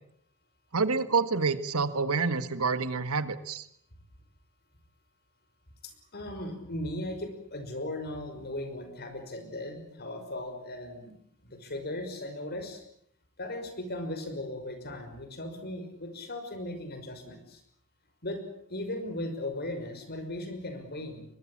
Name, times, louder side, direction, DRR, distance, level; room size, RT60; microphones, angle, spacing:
voice 1, 0.7-3.7, right 4 dB, 80° right, 12 dB, 1.7 m, -28 dB
voice 2, 5.8-11.1 11.4-12.8 13.4-17.6 18.2-18.4 18.7-21.3, left 1 dB, 45° left, 7 dB, 5.8 m, -37 dB
23.0 x 22.0 x 8.8 m, 0.71 s
head